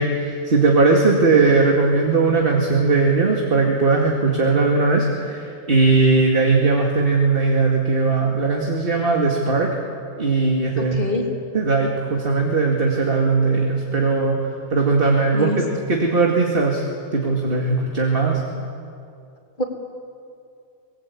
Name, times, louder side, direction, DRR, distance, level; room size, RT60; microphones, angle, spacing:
voice 1, 0.0-9.7 10.2-11.0 11.5-16.8 17.1-18.4, right 3 dB, 35° right, 0 dB, 2.4 m, -19 dB
voice 2, 10.9-11.3 15.3-15.6 19.6-19.7, left 2 dB, 35° left, 1 dB, 2.9 m, -24 dB
24.5 x 21.0 x 8.6 m, 2.4 s
omnidirectional pair, 1.6 m